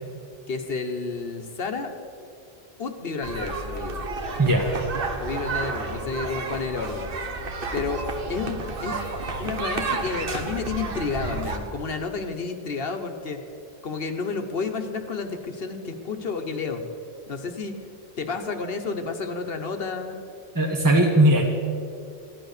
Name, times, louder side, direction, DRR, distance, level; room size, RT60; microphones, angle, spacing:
voice 1, 0.5-1.9 2.8-4.0 5.2-7.1 7.7-8.0 8.3-9.0 9.4-13.4 13.8-16.8 17.3-17.7 18.2-20.2, left 4 dB, 70° left, 6 dB, 1.2 m, -30 dB
sound 1, 3.2-11.6, right 3 dB, 65° right, 1.3 m, -31 dB
voice 2, 20.5-21.4, right 1 dB, 20° right, 0 dB, 1.2 m, -18 dB
14.5 x 11.0 x 6.6 m, 2.4 s
omnidirectional pair, 1.0 m